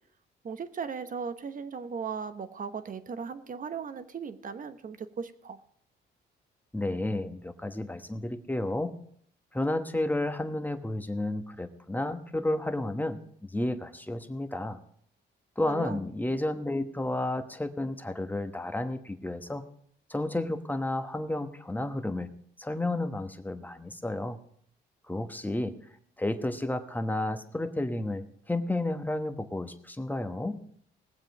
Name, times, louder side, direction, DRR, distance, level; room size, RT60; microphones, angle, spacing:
voice 1, 0.4-5.6 15.6-16.0, right 6 dB, 45° right, 11 dB, 1.0 m, -37 dB
voice 2, 6.7-8.9 9.5-14.8 15.6-19.6 20.1-22.3 22.6-24.4 25.1-25.7 26.2-30.6, left 1 dB, 10° left, 8 dB, 1.1 m, -31 dB
20.0 x 7.5 x 4.8 m, 0.63 s
cardioid pair, 90°, 20 cm